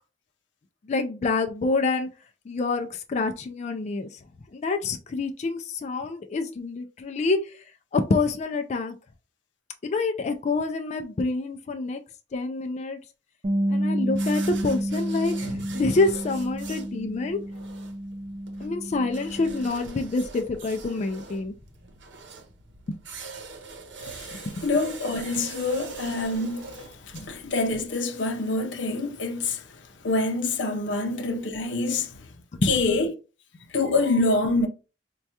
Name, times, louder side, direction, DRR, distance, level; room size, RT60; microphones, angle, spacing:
voice 1, 0.9-2.1 2.5-4.2 4.5-7.5 7.9-8.9 9.8-12.0 12.3-13.0 13.7-17.4 18.6-21.5 22.9-23.0 24.3-24.7 27.1-27.3 32.5-32.7, left 3 dB, 40° left, 0.3 m, -27 dB
Bass guitar, 13.4-19.7, right 1 dB, 30° right, 0.4 m, -30 dB
sound 1, 14.1-27.9, right 4 dB, 80° right, 0.8 m, -43 dB
voice 2, 24.0-32.3 32.6-33.1 33.7-34.7, left 2 dB, 85° left, 0.6 m, -26 dB
4.4 x 2.3 x 2.7 m
head